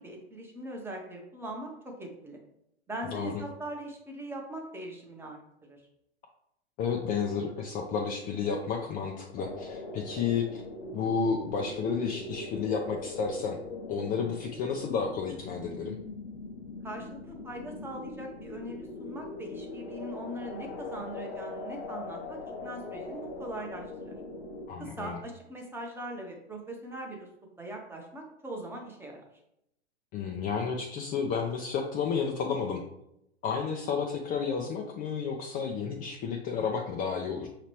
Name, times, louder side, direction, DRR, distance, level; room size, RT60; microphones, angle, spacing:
voice 1, 0.0-2.4 2.9-5.8 16.8-24.2 24.8-27.3 27.6-29.2 33.6-33.9, right 1 dB, 5° right, 0 dB, 0.8 m, -41 dB
voice 2, 6.8-10.6 10.9-13.6 13.9-16.0 24.7-25.2 30.1-32.8 33.4-37.5, left 6 dB, 25° left, 1 dB, 0.4 m, -31 dB
sound 1, 9.4-24.7, left 2 dB, 70° left, 0.8 m, -41 dB
5.7 x 2.9 x 3.1 m, 0.80 s
hypercardioid pair, 105°, 33 cm